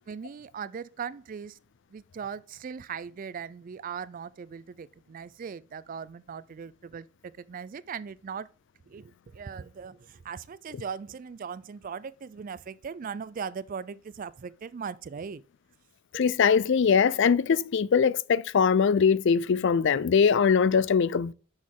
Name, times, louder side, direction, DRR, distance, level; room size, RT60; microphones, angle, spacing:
voice 1, 0.0-1.6 1.9-7.1 7.4-8.5 8.9-15.4 16.1-16.3, right 6 dB, 40° right, 0.3 m, -39 dB
voice 2, 16.1-21.3, left 6 dB, 55° left, 0.4 m, -22 dB
6.3 x 6.2 x 3.7 m
head